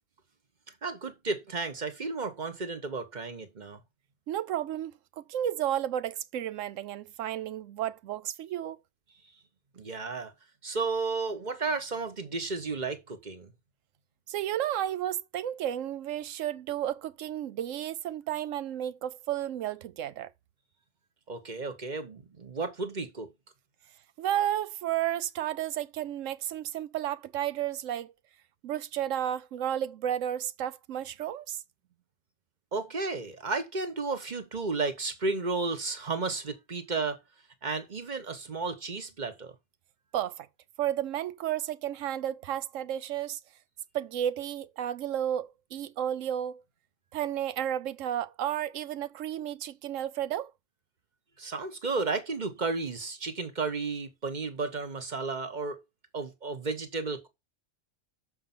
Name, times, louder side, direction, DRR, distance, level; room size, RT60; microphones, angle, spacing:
voice 1, 0.8-3.8 9.7-10.3 10.6-13.5 21.3-23.3 32.7-37.2 37.6-39.5 51.4-55.8 56.1-57.3, right 3 dB, 40° right, 1.2 m, -33 dB
voice 2, 4.3-8.8 14.3-20.3 24.2-28.1 28.6-31.6 40.1-40.5 40.8-43.4 43.9-46.6 47.1-50.5, right 11 dB, 85° right, 1.0 m, -32 dB
6.8 x 5.3 x 5.8 m
omnidirectional pair, 1.3 m